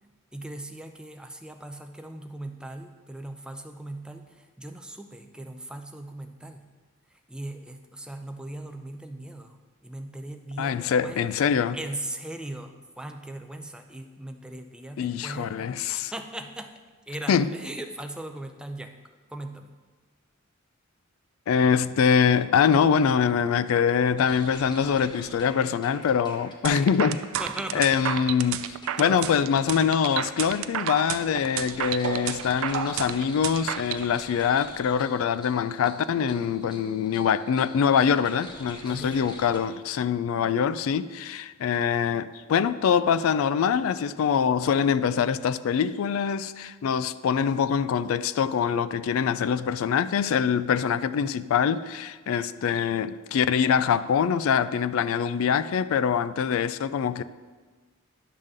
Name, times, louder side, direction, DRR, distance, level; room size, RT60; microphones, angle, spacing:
voice 1, 0.3-6.7 7.3-9.6 9.8-11.2 11.7-16.8 17.1-18.9 19.3-19.7 27.4-27.9 29.0-29.3 38.9-39.2, right 1 dB, 5° right, 0.4 m, -39 dB
voice 2, 10.6-11.8 15.0-16.1 17.3-17.5 21.5-27.2 27.7-57.2, left 7 dB, 75° left, 0.3 m, -24 dB
sound 1, 24.2-39.6, left 1 dB, 20° left, 0.9 m, -46 dB
sound 2, 26.6-34.0, right 10 dB, 75° right, 0.4 m, -31 dB
10.5 x 3.7 x 6.5 m
head